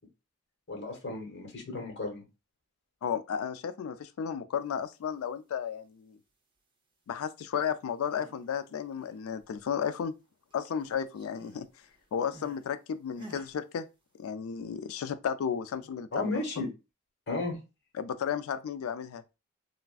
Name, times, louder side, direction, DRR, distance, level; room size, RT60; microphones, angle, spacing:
voice 1, 0.7-2.2 16.1-16.7 17.3-17.6, left 2 dB, 55° left, 1.1 m, -34 dB
voice 2, 3.0-6.2 7.1-10.1 10.5-11.7 12.1-13.9 14.2-16.6 18.0-19.2, left 7 dB, 85° left, 0.3 m, -33 dB
sound 1, 7.9-8.5 8.8-10.2 10.5-12.7 13.2-13.6, equal, 25° right, 0.7 m, -53 dB
3.3 x 2.4 x 2.3 m
head